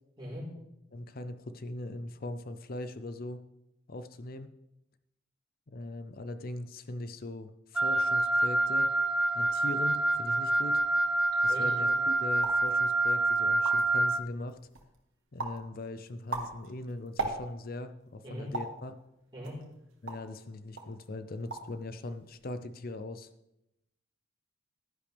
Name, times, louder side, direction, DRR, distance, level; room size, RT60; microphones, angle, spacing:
voice 1, 0.9-3.4 3.9-4.5 5.7-8.9 9.3-10.8 11.4-14.6 15.3-19.0 20.0-23.3, left 2 dB, 50° left, 11 dB, 0.6 m, -40 dB
Wind instrument woodwind instrument, 7.7-14.2, right 2 dB, 5° right, 0.3 m, -27 dB
voice 2, 11.5-12.0 18.2-18.5 19.3-19.5, equal, 25° right, -6 dB, 4.3 m, -41 dB
sound 1, 12.4-12.7 13.2-13.3 13.5-14.0 14.5-15.0 15.4-15.7 16.1-17.8 18.5-18.8 19.4-20.4 20.8-21.0 21.3-21.8 22.0-22.5, right 3 dB, 90° right, 1.5 m, -38 dB
11.5 x 10.5 x 3.4 m, 0.87 s
head